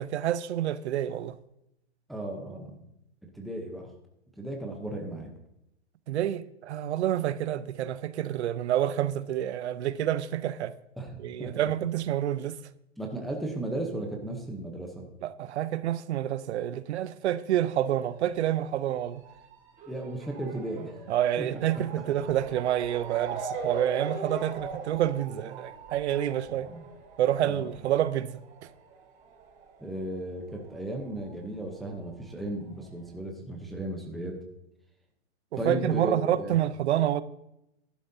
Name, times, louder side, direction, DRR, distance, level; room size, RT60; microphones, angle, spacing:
voice 1, 0.0-1.4 6.1-10.8 11.2-12.6 15.2-19.2 21.1-26.7 27.2-28.4 35.6-37.2, right 11 dB, 70° right, 0.7 m, -28 dB
voice 2, 2.1-2.8 3.3-3.9 4.4-5.3 11.0-11.5 13.0-15.1 19.9-20.9 21.4-21.6 26.5-26.8 27.4-27.7 29.8-34.4 35.6-36.5, right 1 dB, ahead, 0.8 m, -35 dB
Motor vehicle (road) / Siren, 17.7-30.7 30.9-32.1 32.8-32.9 33.1-33.2, right 5 dB, 20° right, 1.5 m, -41 dB
14.5 x 11.5 x 2.8 m
hypercardioid pair, 160°, 35 cm